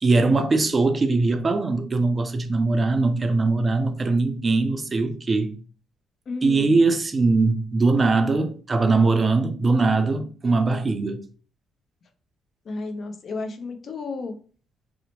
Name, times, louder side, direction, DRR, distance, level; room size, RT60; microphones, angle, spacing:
voice 1, 0.0-5.6 6.4-11.2, right 3 dB, 30° right, 0.4 m, -21 dB
voice 2, 6.3-6.8 12.6-14.3, left 3 dB, 55° left, 0.5 m, -32 dB
2.7 x 2.0 x 2.8 m
cardioid pair, 90°, 0 cm